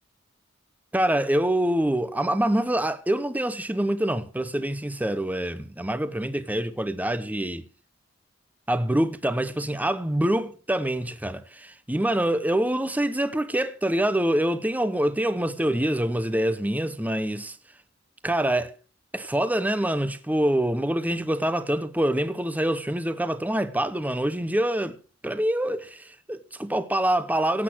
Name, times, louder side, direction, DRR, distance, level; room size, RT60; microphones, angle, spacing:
voice 1, 0.9-7.6 8.7-17.6 18.2-18.8 19.1-25.0 25.2-27.6, right 1 dB, 10° right, 0.8 m, -25 dB
17.0 x 8.3 x 6.1 m
head